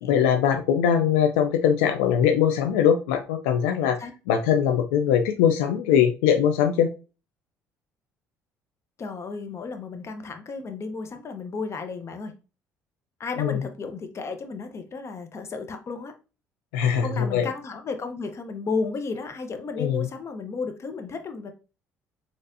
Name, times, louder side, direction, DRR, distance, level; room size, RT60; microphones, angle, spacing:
voice 1, 0.0-4.0 4.3-6.9 13.4-13.6 16.7-17.5 19.8-20.1, left 8 dB, 85° left, 0.4 m, -21 dB
voice 2, 9.0-12.3 13.2-16.1 17.0-21.5, left 4 dB, 40° left, 0.8 m, -33 dB
4.1 x 3.2 x 2.6 m
supercardioid pair, 65°, 7 cm